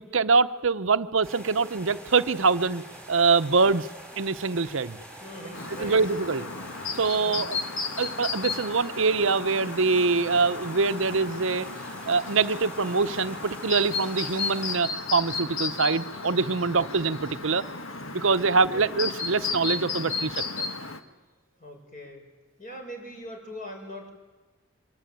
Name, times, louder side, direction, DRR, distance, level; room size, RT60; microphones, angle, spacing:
voice 1, 0.0-2.8 3.1-3.9 4.2-5.0 5.8-6.4 6.9-7.6 8.0-11.7 12.1-17.6 18.1-20.7, right 4 dB, 65° right, 12 dB, 0.8 m, -24 dB
sound 1, 1.2-14.7, right 1 dB, 5° left, 5.0 m, -45 dB
voice 2, 5.2-6.0 6.3-6.5 7.2-7.5 18.4-18.9 21.6-22.3 22.6-24.1, equal, 40° left, 2 dB, 6.5 m, -41 dB
Chirp tweet, 5.5-21.0, left 4 dB, 70° left, 1.6 m, -34 dB
25.0 x 23.0 x 9.2 m, 1.2 s
head